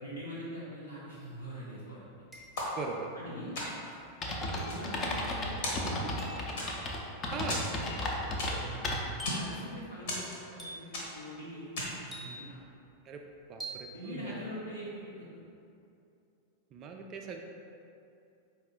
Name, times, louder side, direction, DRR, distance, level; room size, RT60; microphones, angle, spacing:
voice 1, 0.0-2.0 3.1-3.6 4.4-6.2 8.5-8.9 9.4-12.7 13.9-15.3, equal, 85° left, -9 dB, 0.7 m, -43 dB
sound 1, 1.1-1.2 2.3-2.9 4.6-4.9 6.2-6.5 7.8-8.2 9.2-9.6 10.6-11.0 12.1-12.6 13.6-13.9, equal, 5° left, 0.8 m, -45 dB
sound 2, 2.6-3.2 3.5-4.0 4.5-5.3 5.6-6.2 6.6-7.0 7.5-8.8 9.1-9.5 10.1-10.6 10.9-11.3 11.8-12.1, left 1 dB, 55° left, 1.0 m, -37 dB
voice 2, 2.8-3.1 7.3-7.7 13.1-13.2 13.5-14.3 16.7-17.4, right 5 dB, 35° right, 2 dB, 0.3 m, -40 dB
sound 3, 4.2-9.3, left 1 dB, 30° left, 0.6 m, -34 dB
4.7 x 2.7 x 3.5 m, 2.6 s
figure-of-eight pair, 90°, 0 cm